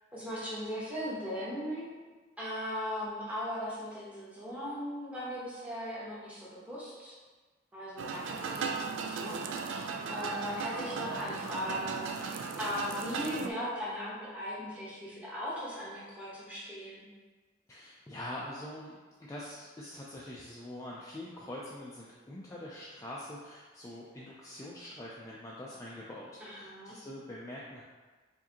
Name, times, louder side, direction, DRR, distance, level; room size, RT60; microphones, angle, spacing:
voice 1, 0.1-1.9 2.4-7.1 7.7-17.0 26.4-27.0, equal, 5° right, -7 dB, 0.9 m, -38 dB
sound 1, 8.0-13.5, right 5 dB, 75° right, 0.3 m, -37 dB
voice 2, 17.7-19.0 19.3-27.8, left 1 dB, 15° left, -6 dB, 0.3 m, -44 dB
4.7 x 2.6 x 2.8 m, 1.4 s
head